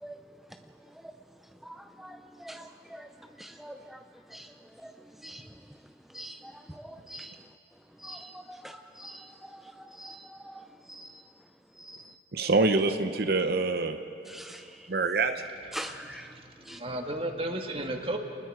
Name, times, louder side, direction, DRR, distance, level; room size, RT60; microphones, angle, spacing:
voice 1, 1.6-3.1 3.4-4.0 4.3-4.9 5.2-5.5 6.1-7.4 8.0-11.2 11.8-12.2 14.3-14.9 15.7-16.3 16.7-16.8, right 1 dB, ahead, 6 dB, 0.4 m, -44 dB
voice 2, 12.3-14.0 14.9-15.3, right 3 dB, 60° right, 8 dB, 0.8 m, -25 dB
voice 3, 16.3-18.2, right 1 dB, 30° right, 4 dB, 1.8 m, -34 dB
30.0 x 20.0 x 4.8 m, 2.7 s
head